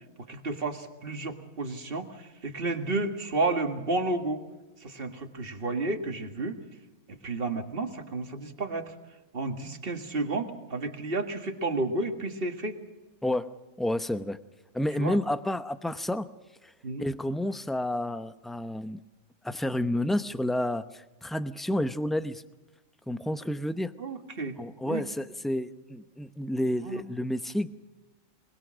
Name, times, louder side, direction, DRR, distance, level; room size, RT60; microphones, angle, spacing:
voice 1, 0.3-4.4 4.8-6.6 7.2-8.9 9.3-12.8 15.0-15.2 16.8-17.1 24.0-24.6 24.9-25.0 26.8-27.0, right 2 dB, 40° right, 5 dB, 2.1 m, -31 dB
voice 2, 13.8-14.4 14.7-16.3 16.6-16.7 17.0-19.0 19.4-22.4 23.1-23.9 24.6-27.7, left 1 dB, ahead, 11 dB, 0.4 m, -30 dB
22.5 x 21.5 x 6.3 m, 1.1 s
omnidirectional pair, 1.4 m